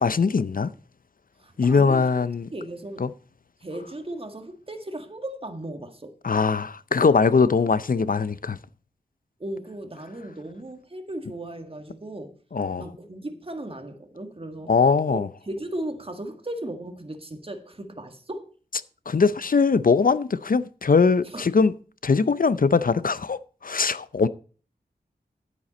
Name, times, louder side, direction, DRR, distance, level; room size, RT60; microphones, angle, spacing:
voice 1, 0.0-0.7 1.6-2.5 3.0-3.1 6.2-8.6 12.5-12.8 14.7-15.3 19.1-21.7 22.0-24.3, left 5 dB, 55° left, 0.6 m, -21 dB
voice 2, 1.4-2.1 2.5-3.1 3.6-6.1 9.4-12.3 12.8-14.7 15.1-18.5 21.2-21.5, right 1 dB, 35° right, 1.8 m, -36 dB
10.0 x 9.3 x 4.2 m
wide cardioid pair, 75°, 17 cm